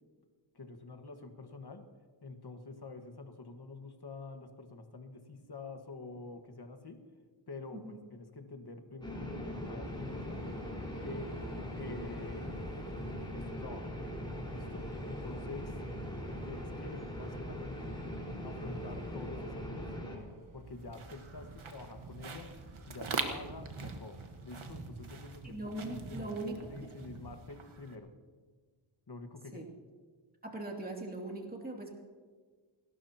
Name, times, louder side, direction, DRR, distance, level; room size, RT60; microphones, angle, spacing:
voice 1, 0.5-1.8 2.2-7.0 7.5-7.8 8.1-10.4 11.0-11.3 11.8-12.6 13.3-13.9 14.5-15.7 16.4-18.0 18.4-19.8 20.5-22.5 22.9-25.6 26.0-26.4 26.7-28.1 29.1-29.6, left 3 dB, 50° left, 6 dB, 1.6 m, -47 dB
sound 1, 9.0-20.2, equal, 10° left, 4.6 m, -41 dB
sound 2, 9.8-24.3, right 2 dB, 40° right, 1.4 m, -53 dB
sound 3, 20.7-28.0, right 4 dB, 75° right, 1.5 m, -43 dB
voice 2, 25.4-26.6 29.5-29.6 30.4-31.9, right 2 dB, 20° right, 0 dB, 2.6 m, -40 dB
28.0 x 12.5 x 2.9 m, 1.5 s
wide cardioid pair, 55°, 50 cm